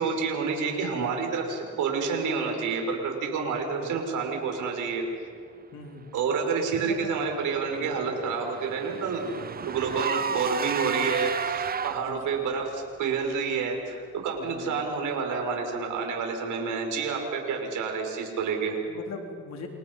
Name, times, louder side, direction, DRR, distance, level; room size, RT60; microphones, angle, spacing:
voice 1, 0.0-5.0 6.1-9.3 9.6-18.8, right 5 dB, 80° right, 2 dB, 6.0 m, -29 dB
voice 2, 5.7-6.2 6.8-7.1 7.8-8.2 12.1-12.3 14.5-14.9 18.9-19.7, left 4 dB, 60° left, 2 dB, 3.8 m, -41 dB
Car / Engine, 7.3-12.3, right 6 dB, 30° right, 0.7 m, -32 dB
29.0 x 29.0 x 5.6 m, 2.1 s
cardioid pair, 90°, 30 cm